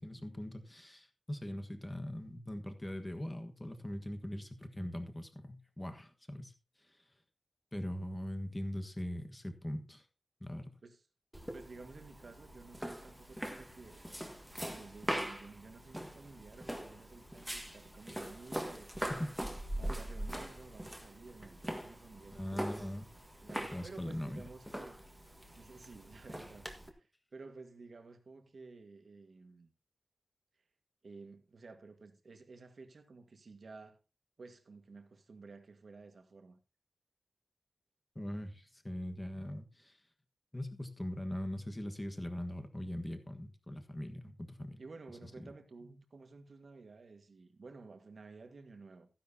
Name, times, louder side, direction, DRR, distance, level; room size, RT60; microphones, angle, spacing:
voice 1, 0.0-6.5 7.7-10.0 10.4-10.7 19.1-19.3 22.3-23.0 23.7-24.5 38.1-40.0 40.5-44.8 45.4-45.5, left 1 dB, 15° left, 1.4 m, -41 dB
sound 1, 11.3-26.9, right 1 dB, 5° right, 1.7 m, -42 dB
voice 2, 11.5-14.0 14.6-19.3 19.8-22.9 23.4-25.0 25.6-29.7 31.0-34.0 34.4-36.6 44.8-49.1, right 3 dB, 55° right, 1.7 m, -53 dB
15.0 x 10.5 x 2.8 m
wide cardioid pair, 140°, 0 cm